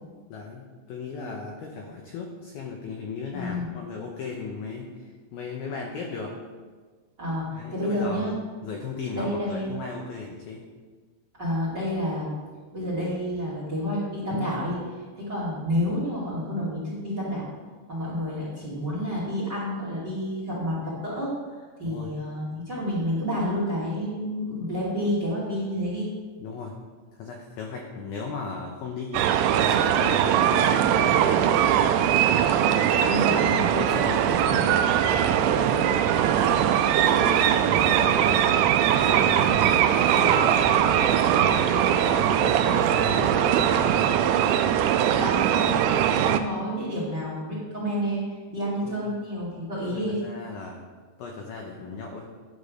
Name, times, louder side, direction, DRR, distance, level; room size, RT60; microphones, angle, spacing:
voice 1, 0.3-6.4 7.5-8.4 8.6-10.6 21.9-22.1 26.4-26.8 27.2-31.6 32.9-34.8 35.2-36.7 37.2-38.4 39.0-44.1 48.8-49.0 49.9-50.8 51.2-52.3, left 4 dB, 85° left, 1 dB, 2.1 m, -36 dB
voice 2, 3.3-3.7 7.2-8.3 9.1-9.8 11.4-12.3 12.7-14.9 15.2-17.5 17.9-21.3 21.8-26.1 33.0-33.8 45.1-50.2, equal, 35° right, -6 dB, 2.0 m, -29 dB
sound 1, 29.1-46.4, right 10 dB, 85° right, 2.5 m, -21 dB
11.0 x 5.3 x 6.6 m, 1.4 s
omnidirectional pair, 5.6 m